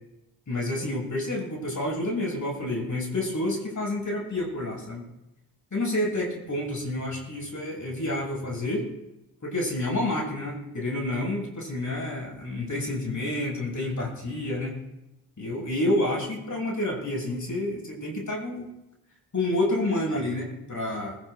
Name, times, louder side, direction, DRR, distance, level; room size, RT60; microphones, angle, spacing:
voice 1, 0.5-5.1 5.7-8.8 9.4-14.8 15.4-18.7 19.3-21.2, left 1 dB, 40° left, -1 dB, 7.3 m, -29 dB
24.0 x 16.0 x 2.7 m, 0.93 s
supercardioid pair, 50°, 46 cm